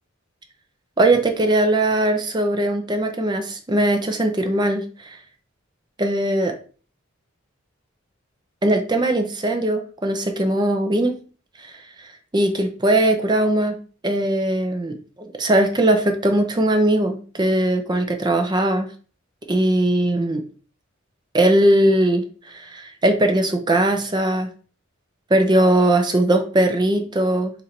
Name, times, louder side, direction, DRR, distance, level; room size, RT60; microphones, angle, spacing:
voice 1, 1.0-5.2 6.0-6.5 8.6-11.1 11.6-11.7 12.3-13.8 14.0-18.9 19.5-20.4 21.3-24.5 25.3-27.5, right 1 dB, 20° right, 6 dB, 0.6 m, -20 dB
4.3 x 2.6 x 4.3 m, 0.39 s
head